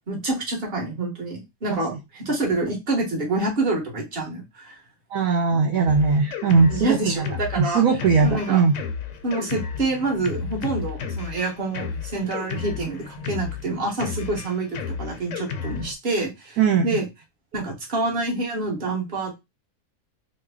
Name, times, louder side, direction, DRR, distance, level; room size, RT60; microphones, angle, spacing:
voice 1, 0.1-4.8 5.5-5.6 6.7-7.8 8.2-8.6 9.2-17.0 17.5-19.4, right 2 dB, 40° right, -1 dB, 1.4 m, -27 dB
voice 2, 5.1-7.2 7.6-8.7 16.6-16.9, right 5 dB, 70° right, 2 dB, 1.0 m, -19 dB
Drum kit, 5.9-15.9, left 6 dB, 65° left, 0.8 m, -33 dB
3.1 x 2.2 x 3.5 m, 0.21 s
omnidirectional pair, 1.6 m